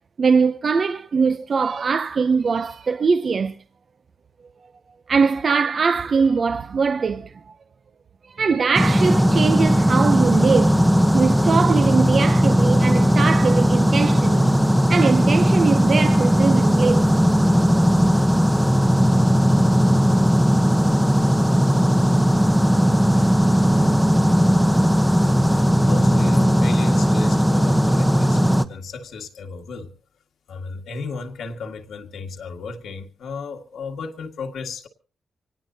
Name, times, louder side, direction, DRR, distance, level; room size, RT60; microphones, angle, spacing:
voice 1, 0.2-3.6 5.1-7.5 8.3-10.9 11.1-14.6 14.9-17.1, right 5 dB, 45° right, 0.7 m, -21 dB
sound 1, 8.7-28.6, equal, ahead, 0.9 m, -17 dB
voice 2, 25.2-29.9 30.5-34.9, left 4 dB, 80° left, 1.9 m, -35 dB
25.0 x 18.5 x 2.9 m
cardioid pair, 120°, 0 cm